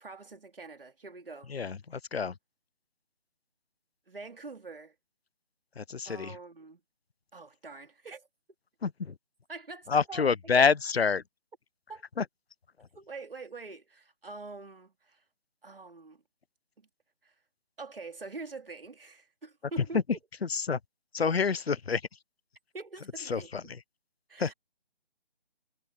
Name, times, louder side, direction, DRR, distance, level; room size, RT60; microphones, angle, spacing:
voice 1, 0.0-1.5 4.1-5.0 6.1-6.8 7.3-8.3 9.5-10.6 11.9-12.0 13.0-15.2 15.6-16.2 16.8-16.9 17.2-17.3 17.8-20.0 22.7-23.8 24.3-24.5, right 3 dB, 60° right, 3.5 m, -45 dB
voice 2, 1.5-2.3 5.8-6.4 8.8-9.1 9.9-11.2 12.2-12.3 12.8-12.9 20.5-20.8 21.1-22.0 23.3-23.6 24.4-24.5, left 5 dB, 75° left, 0.7 m, -27 dB
figure-of-eight pair, 150°, 31 cm